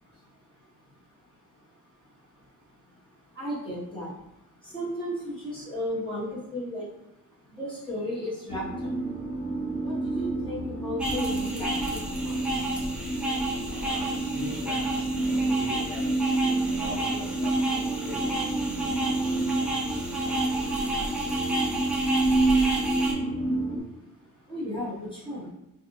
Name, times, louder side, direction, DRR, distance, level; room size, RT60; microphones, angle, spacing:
voice 1, 3.4-4.1 4.7-6.8 7.6-8.9 9.8-11.7 12.2-12.4 24.5-25.5, left 1 dB, 15° left, -8 dB, 0.9 m, -34 dB
sound 1, 8.5-23.8, right 2 dB, 45° left, 1.3 m, -28 dB
sound 2, 11.0-23.1, right 1 dB, 5° right, 0.3 m, -32 dB
voice 2, 13.7-17.5 18.1-21.3, right 1 dB, 30° right, -5 dB, 0.7 m, -43 dB
2.5 x 2.5 x 2.5 m, 0.88 s
cardioid pair, 155°, 32 cm